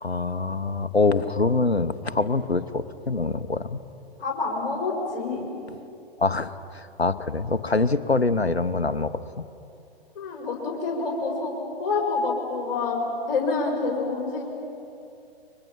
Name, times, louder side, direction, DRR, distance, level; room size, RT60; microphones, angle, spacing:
voice 1, 0.0-3.8 6.2-9.4, left 3 dB, 85° left, 13 dB, 1.1 m, -25 dB
voice 2, 4.2-5.5 10.1-13.0 13.3-14.4, left 3 dB, 40° left, 0 dB, 4.9 m, -27 dB
30.0 x 24.0 x 5.9 m, 2.7 s
figure-of-eight pair, 120°, 31 cm